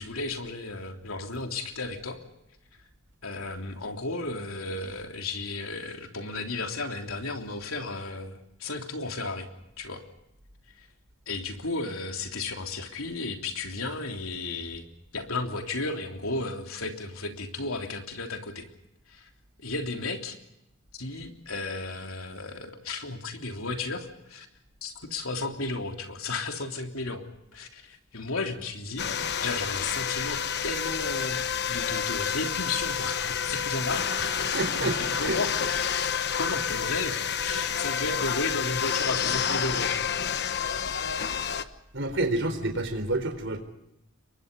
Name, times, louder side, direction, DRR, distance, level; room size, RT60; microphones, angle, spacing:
voice 1, 0.0-2.2 3.2-9.5 9.8-10.0 10.8-10.9 11.3-14.8 15.1-18.7 19.1-19.3 19.6-20.4 20.9-24.5 24.8-29.1 29.4-31.4 31.7-40.1, left 3 dB, 75° left, 4 dB, 3.4 m, -34 dB
sound 1, 29.0-41.6, left 7 dB, 50° left, 1.2 m, -29 dB
voice 2, 34.5-35.4 41.9-43.6, right 2 dB, 60° right, 7 dB, 4.3 m, -29 dB
30.0 x 23.5 x 5.4 m, 0.84 s
head